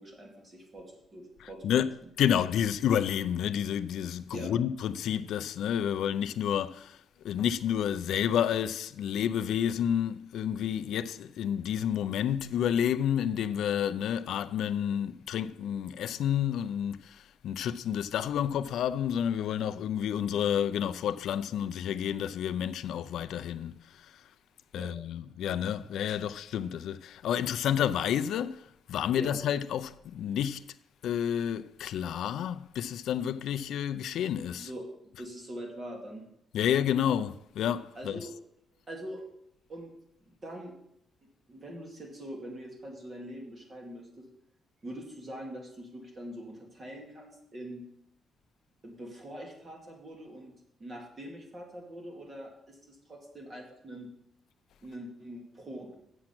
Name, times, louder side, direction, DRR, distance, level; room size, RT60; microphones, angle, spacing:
voice 1, 0.0-2.1 4.3-4.5 24.7-24.9 29.1-29.4 34.6-34.9 35.2-36.3 37.9-38.3 38.9-39.2 39.7-39.9 40.4-40.7 41.5-44.3 44.8-47.8 48.8-54.1 54.8-56.0, right 1 dB, 25° right, 2.1 m, -43 dB
voice 2, 1.4-1.9 2.2-7.0 7.2-24.1 24.7-28.6 28.9-30.6 31.0-34.7 36.5-38.2, left 9 dB, 75° left, 0.4 m, -30 dB
7.7 x 7.2 x 5.9 m
cardioid pair, 150°, 0 cm